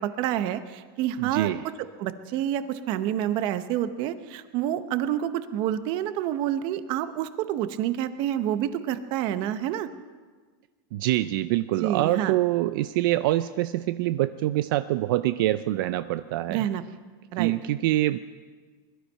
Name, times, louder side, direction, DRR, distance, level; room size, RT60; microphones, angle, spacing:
voice 1, 0.0-1.5 1.8-9.9 11.8-12.3 16.5-16.8 17.3-17.5, right 11 dB, 45° right, 12 dB, 0.8 m, -28 dB
voice 2, 1.2-1.6 10.9-16.6 17.4-18.2, right 15 dB, 70° right, 13 dB, 0.5 m, -25 dB
21.0 x 12.5 x 5.5 m, 1.5 s
supercardioid pair, 165°, 12 cm